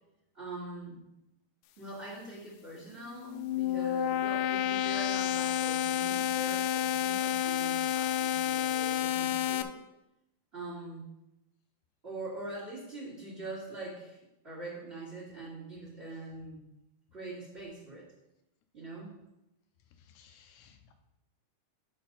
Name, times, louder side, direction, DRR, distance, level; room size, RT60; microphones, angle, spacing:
voice 1, 0.3-1.0 1.8-9.8 10.5-11.0 12.0-14.2 14.4-16.6 17.1-18.1 18.7-19.2, right 2 dB, 25° right, -7 dB, 1.8 m, -43 dB
sound 1, 3.1-9.6, left 12 dB, 90° left, 2.2 m, -30 dB
voice 2, 19.9-20.9, left 7 dB, 75° left, 6 dB, 2.0 m, -59 dB
8.8 x 6.3 x 4.0 m, 0.91 s
omnidirectional pair, 3.7 m